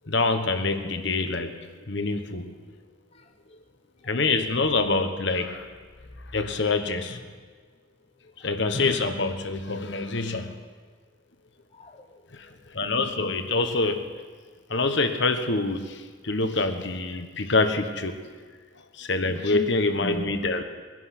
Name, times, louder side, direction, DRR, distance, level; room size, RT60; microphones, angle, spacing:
voice 1, 0.0-2.6 4.0-5.7 6.2-7.3 8.4-10.5 12.3-14.1 14.7-18.3 18.8-20.6, left 3 dB, 60° left, 7 dB, 1.1 m, -26 dB
voice 2, 3.1-3.7 4.0-4.2 8.4-8.5 11.7-12.5 19.2-19.7 19.9-20.3, left 1 dB, 30° left, 4 dB, 0.8 m, -39 dB
21.0 x 10.5 x 6.0 m, 1.5 s
head